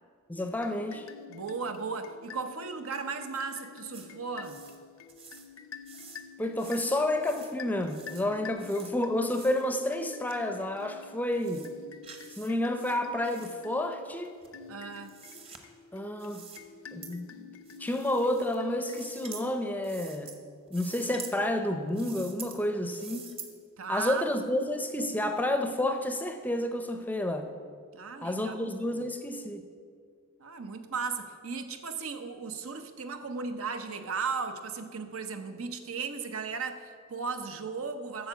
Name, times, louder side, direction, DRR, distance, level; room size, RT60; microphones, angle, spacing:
voice 1, 0.3-1.1 6.4-11.7 12.4-14.3 15.9-16.5 16.9-17.5 17.8-20.3 20.7-23.3 23.9-27.5 28.2-29.6, left 1 dB, 10° left, 6 dB, 0.5 m, -30 dB
sound 1, 0.6-19.8, left 7 dB, 70° left, 0.6 m, -49 dB
voice 2, 1.3-4.6 14.7-15.1 23.8-24.3 27.9-29.0 30.4-38.3, right 5 dB, 75° right, 8 dB, 0.8 m, -36 dB
sound 2, 3.9-4.1 4.4-4.8 5.1-5.5 5.9-6.2 6.5-6.9 7.2-7.5 7.8-8.2 8.6-8.9 9.3-9.6 10.3-10.4 10.8-10.9 11.3-11.7 12.0-12.5 12.7-13.5 14.4-15.6 16.2-16.6 17.0-17.1 17.6-18.5 18.8-19.4 19.8-20.4 20.7-21.3 21.9-22.6 22.9-23.5, right 5 dB, 25° right, 0.9 m, -47 dB
9.1 x 6.8 x 7.0 m, 2.1 s
head